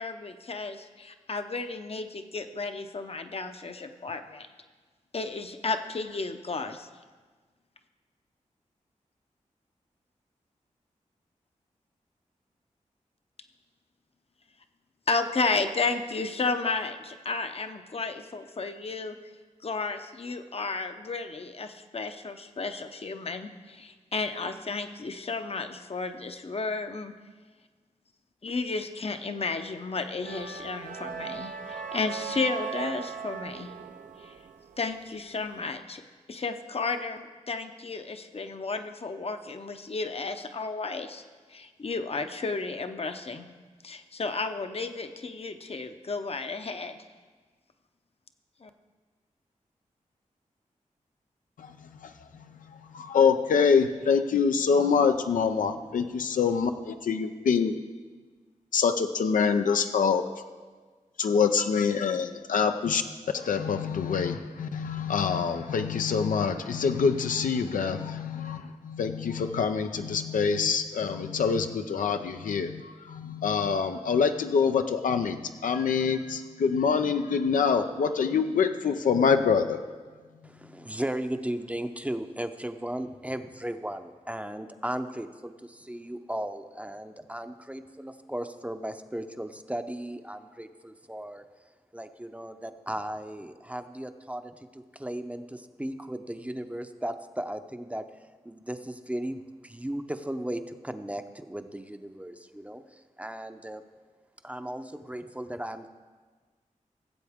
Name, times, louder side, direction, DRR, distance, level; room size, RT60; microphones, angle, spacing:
voice 1, 0.0-4.5 5.1-6.9 15.1-19.2 19.6-27.2 28.4-33.7 34.2-34.4 34.8-36.0 36.3-41.2 41.5-43.5 43.8-47.0 48.6-48.7, left 3 dB, 50° left, 7 dB, 0.7 m, -33 dB
sound 1, 30.2-35.4, right 6 dB, 75° right, 0.6 m, -38 dB
voice 2, 51.6-57.8 58.7-60.2 61.2-63.0 63.3-79.8, left 6 dB, 90° left, 7 dB, 0.5 m, -25 dB
voice 3, 80.4-91.4 91.9-98.1 98.4-103.8 104.4-105.9, right 1 dB, 10° right, 8 dB, 0.6 m, -36 dB
16.5 x 7.7 x 3.6 m, 1.4 s
cardioid pair, 60°, 13 cm